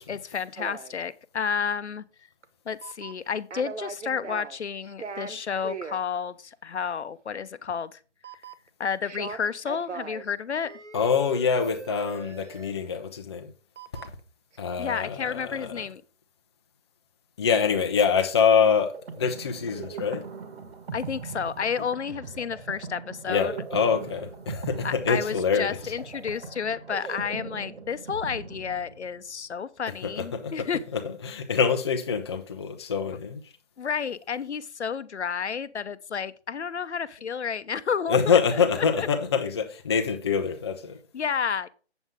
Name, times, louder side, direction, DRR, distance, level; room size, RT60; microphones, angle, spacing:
voice 1, 0.1-2.0 2.7-8.0 8.8-10.7 14.8-16.0 20.9-23.5 24.8-30.8 33.8-38.4 38.8-39.1 41.1-41.7, left 6 dB, 75° left, 0.9 m, -31 dB
sound 1, 0.6-1.0 2.4-2.5 2.8-3.3 3.5-4.6 4.8-6.0 8.2-8.7 9.0-10.3 10.6-12.8 13.8-14.2 14.5-14.6, right 5 dB, 85° right, 1.1 m, -39 dB
voice 2, 10.9-13.5 14.0-14.1 14.6-15.8 17.4-20.2 23.3-25.8 30.0-30.7 30.9-33.4 38.1-41.0, left 6 dB, 25° left, 0.7 m, -25 dB
sound 2, 18.8-29.3, right 4 dB, 60° right, 1.6 m, -39 dB
8.0 x 7.4 x 3.6 m
hypercardioid pair, 160°, 35 cm